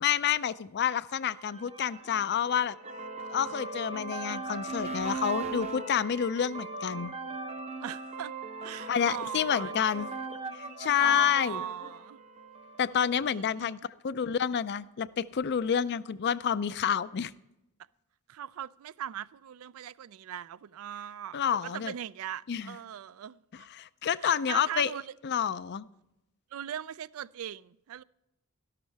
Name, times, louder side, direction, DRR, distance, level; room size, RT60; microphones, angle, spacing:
voice 1, 0.0-2.8 3.3-7.1 8.9-10.1 10.5-11.6 12.8-13.8 14.0-17.3 21.3-21.9 22.5-22.8 23.7-24.9 25.2-25.9, left 8 dB, 50° left, 0.4 m, -29 dB
sound 1, 1.3-13.1, right 3 dB, 30° right, 0.7 m, -39 dB
voice 2, 7.8-8.3 8.6-9.7 11.0-12.2 12.9-13.9 18.3-23.7 24.2-25.1 26.5-28.0, right 10 dB, 65° right, 0.3 m, -40 dB
13.0 x 11.5 x 3.4 m
head